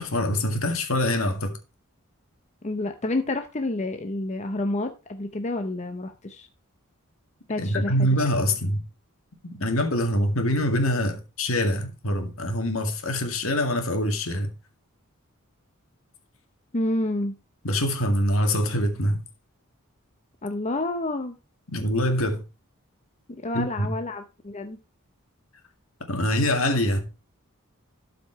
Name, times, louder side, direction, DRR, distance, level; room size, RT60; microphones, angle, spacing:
voice 1, 0.0-1.5 7.6-8.8 9.6-14.5 17.6-19.2 21.7-22.4 23.5-23.9 26.1-27.0, left 1 dB, 70° left, 2.1 m, -24 dB
voice 2, 2.6-6.5 7.5-8.1 16.7-17.3 20.4-21.4 23.3-24.8, left 2 dB, 30° left, 0.7 m, -29 dB
12.5 x 5.1 x 4.6 m
head